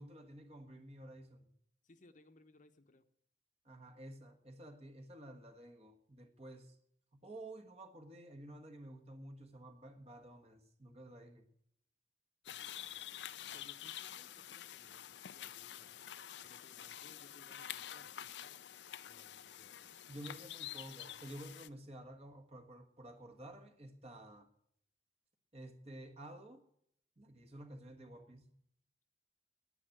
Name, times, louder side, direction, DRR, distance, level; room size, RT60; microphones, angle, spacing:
voice 1, 0.0-1.5 3.6-6.8 7.1-11.5 20.1-24.5 25.5-26.6 27.2-28.5, right 1 dB, 35° right, 1.5 m, -52 dB
voice 2, 1.8-3.1 12.5-18.6 19.0-19.9, left 2 dB, 45° left, 0.9 m, -65 dB
sound 1, 12.4-21.7, left 11 dB, 80° left, 0.5 m, -48 dB
10.0 x 9.9 x 7.8 m
head